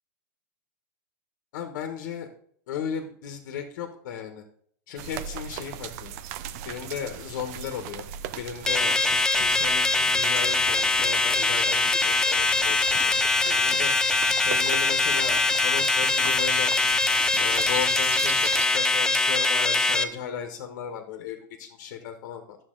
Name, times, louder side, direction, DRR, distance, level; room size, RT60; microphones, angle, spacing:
voice 1, 1.5-2.3 2.7-4.4 4.9-6.1 6.6-8.1 8.3-9.0 9.3-13.9 14.4-16.7 17.4-22.6, left 8 dB, 65° left, 5 dB, 1.2 m, -35 dB
sound 1, 5.0-18.7, right 11 dB, 55° right, 0.5 m, -38 dB
sound 2, 8.7-20.0, left 3 dB, 5° left, 0.5 m, -23 dB
9.9 x 7.1 x 3.8 m, 0.63 s
supercardioid pair, 135°, 10 cm